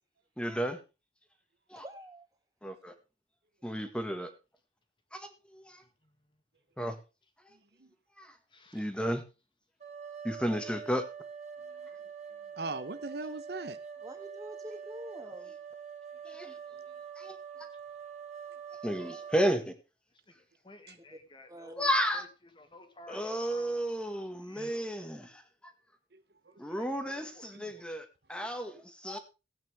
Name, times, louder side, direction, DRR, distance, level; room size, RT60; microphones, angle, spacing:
voice 1, 0.4-0.8 1.7-1.8 2.6-2.9 3.6-4.3 5.1-5.8 6.8-7.0 8.2-8.3 8.7-9.2 10.2-11.0 15.5-15.6 16.2-16.5 17.2-17.4 18.8-19.7 21.7-22.3 23.1-25.4 26.6-29.2, equal, 5° left, 1.6 m, -33 dB
voice 2, 1.8-2.3 14.0-15.5 21.5-21.7, equal, 20° right, 2.3 m, -46 dB
voice 3, 8.5-8.9 18.9-19.3 20.3-20.4 20.6-22.3 22.6-23.8 24.4-25.1 26.7-27.6, left 2 dB, 30° left, 1.8 m, -55 dB
sound 1, 9.8-19.6, right 7 dB, 40° right, 2.5 m, -45 dB
voice 4, 12.6-13.8 16.7-16.8 24.6-24.7 26.1-26.6 27.5-27.7, right 3 dB, 65° right, 1.0 m, -41 dB
17.0 x 8.9 x 3.5 m
head